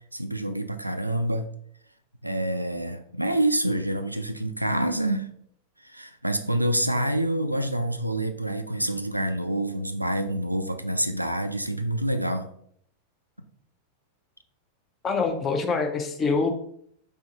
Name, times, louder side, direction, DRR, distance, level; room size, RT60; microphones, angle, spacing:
voice 1, 0.1-1.5 2.2-5.3 5.8-12.5, right 1 dB, 90° right, 8 dB, 0.3 m, -27 dB
voice 2, 15.0-16.5, left 4 dB, 25° left, 5 dB, 0.7 m, -25 dB
4.4 x 3.5 x 2.8 m, 0.66 s
figure-of-eight pair, 90°, 0 cm